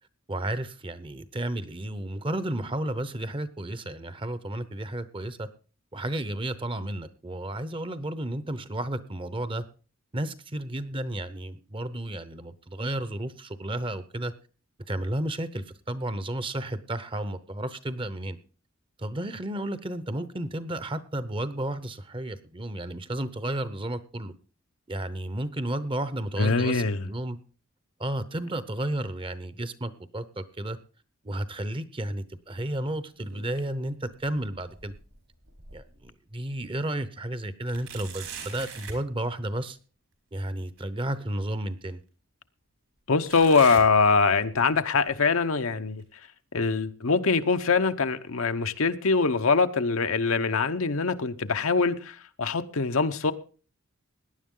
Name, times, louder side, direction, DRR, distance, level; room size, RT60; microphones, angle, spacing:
voice 1, 0.3-5.5 5.9-9.6 10.1-14.3 14.9-18.4 19.0-24.3 24.9-27.4 28.0-30.8 31.2-34.9 35.7-39.8 40.3-42.0, right 1 dB, 25° right, 0.8 m, -32 dB
voice 2, 26.4-27.1 43.1-46.0 46.5-53.3, left 4 dB, 80° left, 0.9 m, -23 dB
sound 1, 33.1-33.8 34.2-36.1 36.6-36.7 37.7-39.1 40.8-40.9 41.8-41.9 43.3-44.6 45.0-45.4 46.0-46.1 47.0-47.1, right 5 dB, 75° right, 4.5 m, -43 dB
17.5 x 10.5 x 3.8 m
head